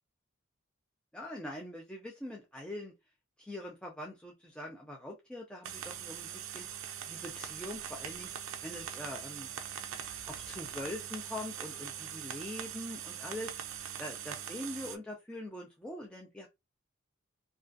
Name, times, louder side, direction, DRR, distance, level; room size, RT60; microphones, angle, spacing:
voice 1, 1.1-2.9 3.4-6.7 7.1-8.3 8.6-9.5 10.3-13.5 14.0-16.5, left 1 dB, 5° left, -1 dB, 0.3 m, -43 dB
sound 1, 5.6-15.0, right 9 dB, 70° right, 0.3 m, -42 dB
2.3 x 2.2 x 2.4 m, 0.22 s
head